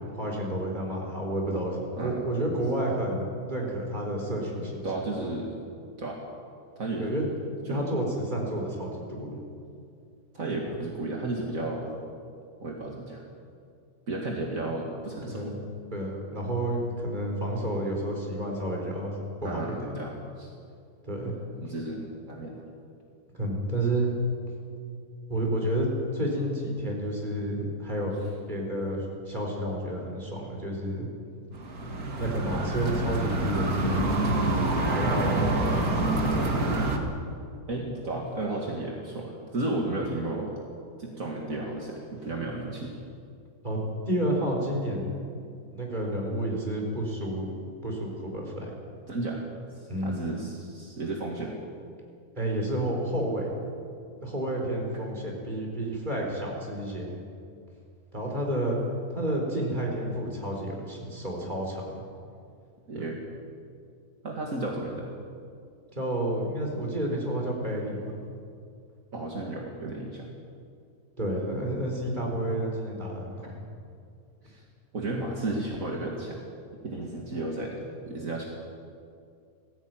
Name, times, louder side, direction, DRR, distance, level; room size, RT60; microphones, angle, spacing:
voice 1, 0.0-4.9 7.0-7.3 7.7-9.4 15.3-15.5 15.9-19.1 19.4-20.0 21.0-21.3 23.3-24.1 25.3-28.1 28.5-31.1 32.2-34.2 34.9-36.4 43.6-43.8 44.0-45.1 45.7-48.7 49.9-50.4 52.4-53.5 54.2-57.2 58.1-58.8 59.1-62.0 62.9-63.1 65.9-68.1 71.2-73.5, right 1 dB, 30° right, -1 dB, 4.5 m, -30 dB
voice 2, 4.8-5.5 6.0-6.2 6.8-7.1 7.7-7.8 10.3-12.0 12.6-13.2 14.1-15.5 19.4-20.5 21.6-22.6 37.7-40.5 41.0-43.0 49.1-49.5 49.8-51.6 62.9-63.2 64.2-65.1 69.1-70.3 74.4-74.6 74.9-76.5 76.8-78.5, right 2 dB, 65° right, -1 dB, 2.5 m, -33 dB
sound 1, 31.5-37.0, right 2 dB, 80° right, 2.6 m, -27 dB
19.0 x 16.0 x 9.2 m, 2.3 s
omnidirectional pair, 1.5 m